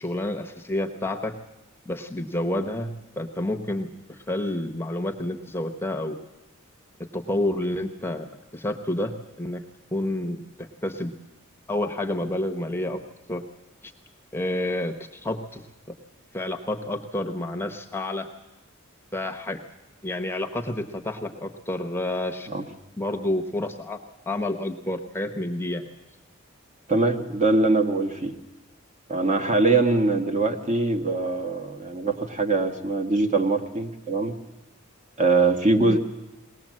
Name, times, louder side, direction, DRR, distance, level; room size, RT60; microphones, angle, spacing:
voice 1, 0.0-1.3 1.9-6.2 7.1-9.6 9.9-11.1 11.7-13.0 13.3-13.4 13.8-13.9 14.3-15.6 16.3-18.3 19.1-19.6 20.0-22.5 23.0-24.0 24.3-25.9 35.8-36.0, left 1 dB, 10° left, 4 dB, 1.0 m, -29 dB
voice 2, 26.9-28.3 29.1-34.3 35.2-36.0, right 3 dB, 35° right, 5 dB, 1.4 m, -22 dB
20.5 x 18.5 x 7.6 m, 1.0 s
head